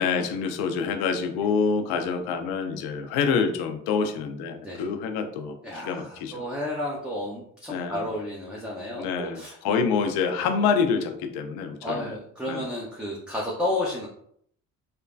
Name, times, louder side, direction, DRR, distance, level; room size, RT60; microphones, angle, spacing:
voice 1, 0.0-6.4 7.7-8.1 9.0-12.0 12.5-12.7, left 5 dB, 65° left, 6 dB, 0.6 m, -26 dB
voice 2, 5.6-9.7 10.4-10.5 11.8-14.1, left 1 dB, ahead, -5 dB, 0.7 m, -32 dB
3.2 x 2.1 x 2.6 m, 0.68 s
hypercardioid pair, 45°, 41 cm